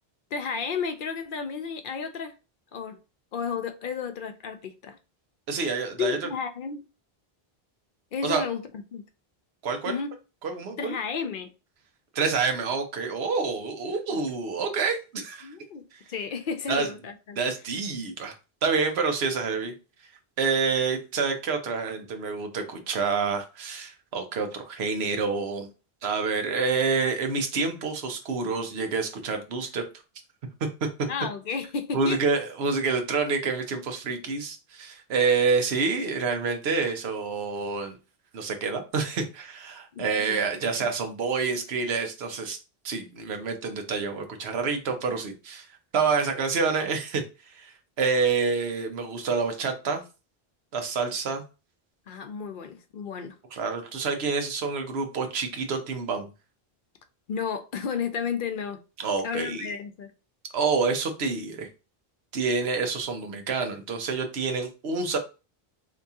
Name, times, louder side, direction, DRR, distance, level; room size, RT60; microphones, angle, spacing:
voice 1, 0.3-2.3 2.7-3.0 3.3-5.0 6.0-6.8 8.1-8.6 8.9-9.0 9.8-10.1 10.8-11.5 15.4-15.8 16.1-17.4 31.1-32.2 39.9-40.4 40.8-40.9 52.1-53.3 57.3-58.8 59.2-60.1, left 6 dB, 65° left, 0.7 m, -32 dB
voice 2, 5.5-6.2 8.2-8.4 9.6-10.0 10.4-10.9 12.1-15.5 16.7-16.9 17.4-18.3 18.6-19.7 20.4-25.7 26.0-29.8 31.9-37.9 38.3-42.6 42.8-45.7 45.9-47.2 47.5-47.7 48.0-50.0 50.7-51.4 53.5-56.3 59.0-59.7 60.5-61.7 62.3-65.2, right 4 dB, 90° right, 1.0 m, -27 dB
3.5 x 2.9 x 2.7 m
omnidirectional pair, 1.0 m